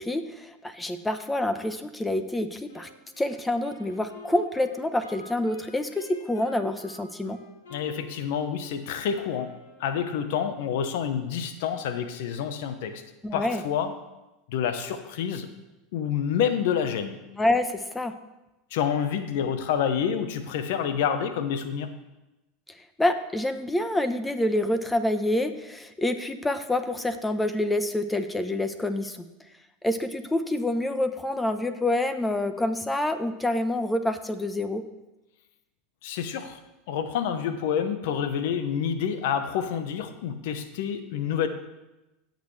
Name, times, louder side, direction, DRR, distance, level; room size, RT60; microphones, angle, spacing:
voice 1, 0.0-2.9 3.2-7.4 13.2-13.6 17.4-18.1 23.0-29.2 29.8-34.8, left 1 dB, 10° left, 10 dB, 1.0 m, -27 dB
Wind instrument woodwind instrument, 2.7-10.2, left 2 dB, 85° left, 3.4 m, -49 dB
voice 2, 7.7-9.5 9.8-13.0 13.3-13.9 14.5-15.5 15.9-17.2 18.7-21.9 36.0-36.6 36.9-41.5, left 8 dB, 70° left, 9 dB, 1.0 m, -28 dB
17.5 x 6.6 x 3.3 m, 1.0 s
hypercardioid pair, 90°, 0 cm